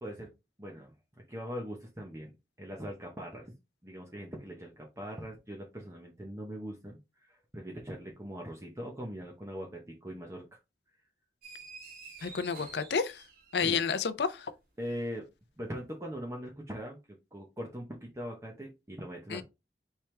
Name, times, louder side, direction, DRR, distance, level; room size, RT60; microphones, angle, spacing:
voice 1, 0.6-0.9 1.3-2.3 2.6-3.5 3.8-10.6 13.6-13.8 14.8-15.2 15.6-17.0 17.3-19.4, equal, 15° right, 0.8 m, -41 dB
sound 1, 11.4-13.9, right 3 dB, 55° right, 1.6 m, -49 dB
voice 2, 12.2-13.2 13.5-14.5 19.3-19.4, left 6 dB, 75° left, 0.5 m, -30 dB
4.5 x 3.4 x 3.2 m
head